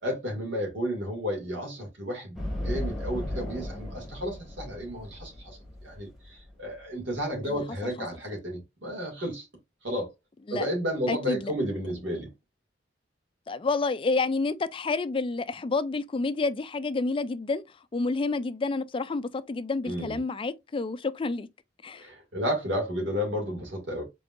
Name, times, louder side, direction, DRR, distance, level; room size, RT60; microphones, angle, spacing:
voice 1, 0.0-5.6 5.8-9.5 9.8-10.1 10.5-12.3 19.8-20.2 22.0-24.1, equal, 70° right, 2.5 m, -32 dB
sound 1, 2.4-7.2, left 1 dB, ahead, 1.3 m, -36 dB
voice 2, 11.1-11.5 13.5-17.6 17.9-21.5 21.8-22.1, left 3 dB, 30° left, 0.4 m, -29 dB
5.1 x 3.8 x 2.5 m
head